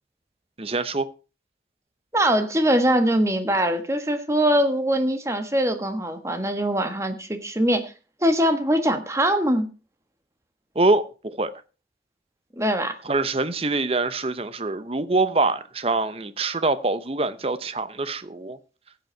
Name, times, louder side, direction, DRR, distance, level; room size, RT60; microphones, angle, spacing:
voice 1, 0.6-1.1 10.7-11.5 13.0-18.6, right 3 dB, 35° right, 0.8 m, -24 dB
voice 2, 2.1-7.9 8.2-9.7 12.6-12.9, equal, 15° right, 1.4 m, -22 dB
15.5 x 8.1 x 4.5 m
head